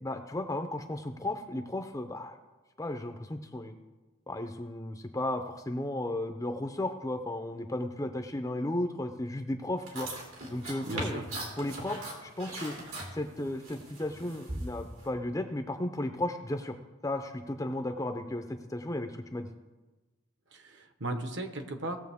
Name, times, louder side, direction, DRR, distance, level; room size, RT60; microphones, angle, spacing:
voice 1, 0.0-2.4 2.8-3.7 4.3-10.1 10.5-11.2 11.6-12.8 13.1-16.7 17.0-18.4 18.7-19.5, left 1 dB, 15° left, 6 dB, 0.5 m, -34 dB
sound 1, 9.8-15.1, right 1 dB, 85° right, 2.9 m, -40 dB
voice 2, 10.9-11.2 20.5-22.0, right 2 dB, 60° right, 7 dB, 1.1 m, -36 dB
18.5 x 7.2 x 3.5 m, 1.2 s
head